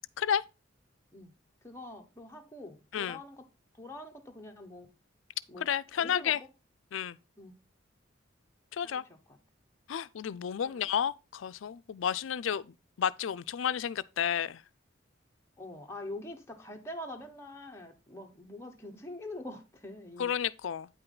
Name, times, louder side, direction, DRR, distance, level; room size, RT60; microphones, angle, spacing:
voice 1, 1.6-3.4 3.7-4.9 5.5-5.6 6.0-6.3 7.4-7.5 8.8-9.4 10.6-10.9 15.6-20.3, left 1 dB, 15° left, 1.1 m, -44 dB
voice 2, 5.6-6.4 6.9-7.2 8.7-9.0 9.9-14.6 20.2-20.9, left 8 dB, 80° left, 0.4 m, -31 dB
9.0 x 5.6 x 3.8 m
head